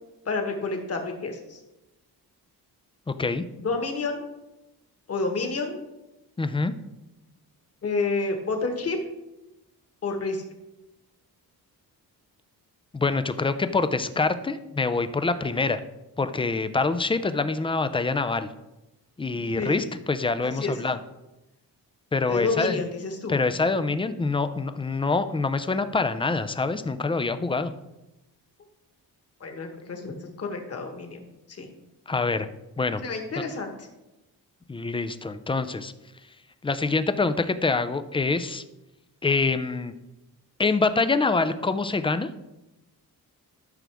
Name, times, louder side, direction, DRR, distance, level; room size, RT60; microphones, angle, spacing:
voice 1, 0.2-1.6 3.6-4.3 5.1-5.8 7.8-9.0 10.0-10.4 19.6-19.8 20.4-20.7 22.3-23.4 29.4-31.2 31.6-31.7 33.0-33.7, left 3 dB, 40° left, 4 dB, 1.4 m, -29 dB
voice 2, 3.1-3.4 6.4-6.7 12.9-15.8 16.2-18.5 19.2-21.0 22.1-22.8 23.3-27.7 32.1-32.5 32.8-33.0 34.7-35.9 36.6-38.6 39.2-39.9 40.6-42.3, left 3 dB, 15° left, 11 dB, 0.3 m, -25 dB
13.0 x 6.1 x 3.4 m, 0.97 s
wide cardioid pair, 170°, 38 cm